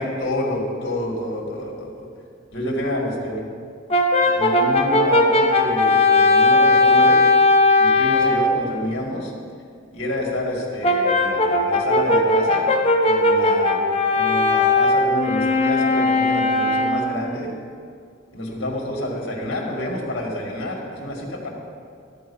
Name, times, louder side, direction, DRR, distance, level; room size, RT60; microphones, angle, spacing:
voice 1, 0.0-2.1 2.5-3.4 4.2-7.2 7.8-9.3 9.9-12.7 13.0-13.8 14.1-17.5 18.3-21.5, left 1 dB, 60° left, -1 dB, 2.2 m, -28 dB
Brass instrument, 3.9-8.5 10.8-17.2, left 2 dB, 30° left, 0.9 m, -18 dB
13.0 x 4.7 x 8.6 m, 2.2 s
head